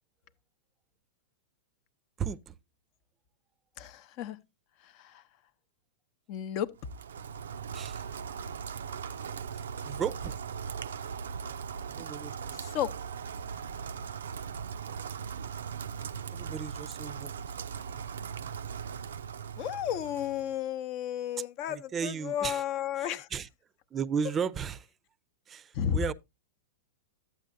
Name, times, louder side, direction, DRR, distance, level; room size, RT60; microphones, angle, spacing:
voice 1, 2.2-2.5 7.7-8.0 9.8-10.4 12.0-12.6 16.3-17.3 21.7-22.6 23.0-23.5 23.9-24.9 25.5-26.1, right 7 dB, 25° right, 0.5 m, -35 dB
voice 2, 3.8-4.4 4.8-5.2 6.3-6.7 12.5-12.9 19.6-23.3 25.7-26.0, left 10 dB, 45° left, 0.7 m, -33 dB
Rain, 6.8-20.6, right 7 dB, 75° right, 0.4 m, -39 dB
12.0 x 8.2 x 2.6 m
hypercardioid pair, 105°, 0 cm